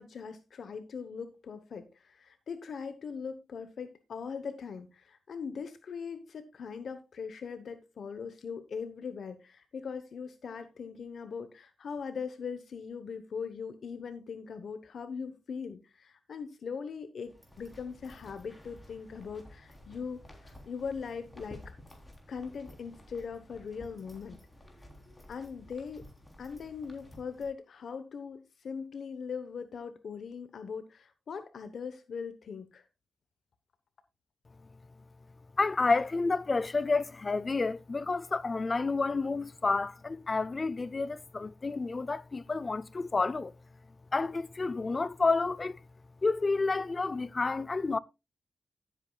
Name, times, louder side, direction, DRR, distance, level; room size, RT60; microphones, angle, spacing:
voice 1, 0.0-21.7 22.3-24.4 25.3-26.0 26.4-32.8, left 6 dB, 65° left, 1.0 m, -40 dB
sound 1, 17.2-27.5, left 1 dB, 10° left, 3.4 m, -53 dB
voice 2, 35.6-43.5 44.1-45.8 46.2-48.0, left 3 dB, 30° left, 0.5 m, -30 dB
15.5 x 8.3 x 2.3 m
wide cardioid pair, 105°, 0 cm